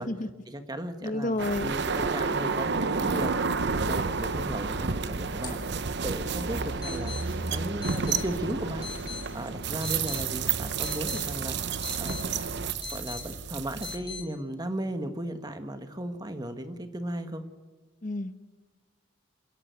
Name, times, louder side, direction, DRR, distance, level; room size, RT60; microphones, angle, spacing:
voice 1, 0.5-1.4 1.6-5.6 6.0-7.1 7.5-8.9 9.3-11.6 12.0-12.4 12.9-17.4, right 1 dB, 20° right, 8 dB, 1.4 m, -36 dB
voice 2, 1.0-1.7 18.0-18.4, left 2 dB, 40° left, 11 dB, 0.9 m, -30 dB
sound 1, 1.4-14.0, right 5 dB, 55° right, 0.9 m, -30 dB
sound 2, 5.3-14.2, left 4 dB, 20° left, 4.8 m, -42 dB
28.0 x 11.0 x 9.4 m, 1.2 s
head